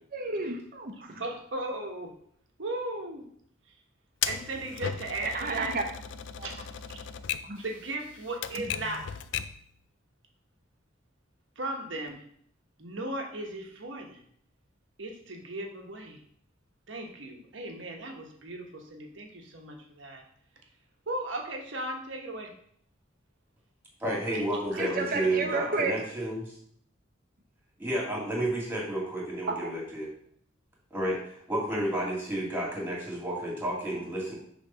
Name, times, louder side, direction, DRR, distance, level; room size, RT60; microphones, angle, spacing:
voice 1, 0.1-1.2 5.2-5.8 6.4-6.5 7.4-7.6 24.8-25.9 29.5-29.7, right 3 dB, 50° right, 5 dB, 0.9 m, -31 dB
voice 2, 1.2-2.1 2.6-3.2 4.2-5.7 6.4-6.7 7.6-9.0 11.6-12.2 12.8-14.2 15.0-16.2 16.9-20.2 21.1-22.5 24.5-24.8, right 2 dB, 75° right, 2 dB, 1.2 m, -36 dB
Typewriter, 4.2-9.7, left 8 dB, 65° left, 0.4 m, -37 dB
voice 3, 24.0-26.5 27.8-30.1 30.9-34.3, right 1 dB, 10° right, -4 dB, 2.3 m, -31 dB
6.3 x 3.5 x 5.6 m, 0.66 s
head